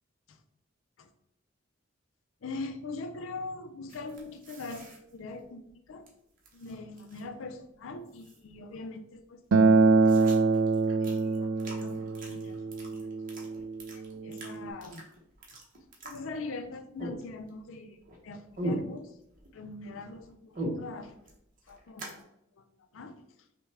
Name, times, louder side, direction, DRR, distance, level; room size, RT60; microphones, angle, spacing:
voice 1, 2.4-6.0 6.5-9.4 9.7-9.8 10.1-10.6 11.0-13.1 13.4-13.5 13.9-15.1 15.5-15.6 16.0-19.2 19.5-21.2 21.7-22.2 22.6-22.7 22.9-23.2, left 3 dB, 90° left, 8 dB, 0.5 m, -42 dB
sound 1, 3.9-6.1 6.4-7.4 7.7-7.8 8.1-8.7 9.1-9.2 9.5-16.7 17.0-17.7 18.0-19.5 19.8-22.2, right 1 dB, 45° right, 0.9 m, -41 dB
Acoustic guitar, 9.5-14.7, right 3 dB, 80° right, 0.4 m, -25 dB
5.4 x 2.3 x 3.3 m, 0.80 s
head